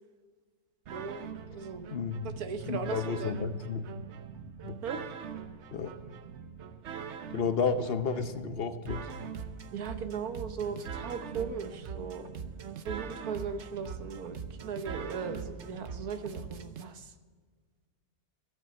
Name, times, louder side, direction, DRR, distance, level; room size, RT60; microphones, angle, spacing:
sound 1, 0.9-16.8, right 6 dB, 55° right, 1.0 m, -42 dB
voice 1, 0.9-1.2 1.5-1.9 2.4-3.3 4.8-5.0 9.7-12.3 12.8-17.1, right 6 dB, 80° right, 8 dB, 1.5 m, -38 dB
voice 2, 1.9-2.3 2.7-3.9 4.6-4.8 5.7-5.9 7.3-9.1, left 5 dB, 50° left, 10 dB, 0.9 m, -31 dB
14.0 x 8.0 x 7.4 m, 1.5 s
omnidirectional pair, 1.5 m